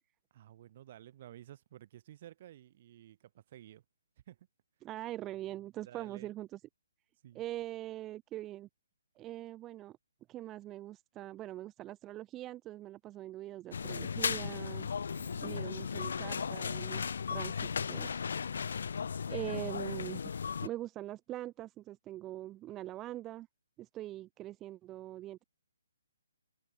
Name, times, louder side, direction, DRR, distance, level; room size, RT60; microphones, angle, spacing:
voice 1, 0.3-3.8 4.3-4.5 5.8-6.3 7.2-7.4 15.1-15.5, right 12 dB, 40° right, 2.5 m, -53 dB
voice 2, 4.8-6.6 7.3-8.7 9.2-10.0 10.3-14.9 15.4-17.0 17.3-18.5 19.3-20.2 20.6-23.5 23.8-25.4, right 14 dB, 20° right, 0.6 m, -43 dB
sound 1, 13.7-20.7, left 6 dB, 60° left, 0.5 m, -36 dB
figure-of-eight pair, 140°, 0 cm